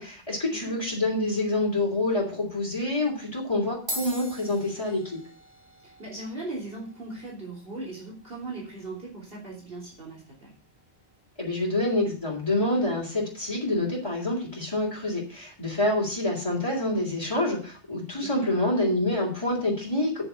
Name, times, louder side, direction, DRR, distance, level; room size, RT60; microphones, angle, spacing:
voice 1, 0.0-5.2 11.4-20.3, left 1 dB, 25° left, -6 dB, 3.5 m, -27 dB
sound 1, 3.9-12.4, equal, 80° right, 3.5 m, -44 dB
voice 2, 5.8-10.5 18.2-18.7, right 2 dB, 65° right, -3 dB, 3.8 m, -39 dB
9.1 x 6.9 x 8.3 m, 0.40 s
omnidirectional pair, 1.1 m